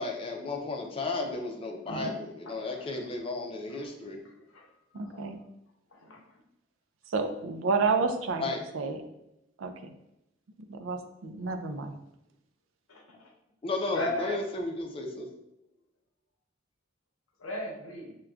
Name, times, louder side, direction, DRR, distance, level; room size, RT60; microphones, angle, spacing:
voice 1, 0.0-4.2 8.4-8.6 13.6-15.3, left 3 dB, 30° left, 2 dB, 0.5 m, -33 dB
voice 2, 2.5-3.1 3.7-3.9 4.5-4.7 4.9-5.2 5.9-6.4 12.9-13.3 13.9-14.4 17.4-18.2, left 1 dB, 85° left, 0 dB, 0.8 m, -37 dB
voice 3, 4.9-5.4 7.1-8.5 8.7-9.0 9.6-9.9 10.7-12.0, right 4 dB, 75° right, 7 dB, 0.4 m, -30 dB
6.2 x 2.2 x 2.3 m, 0.86 s
head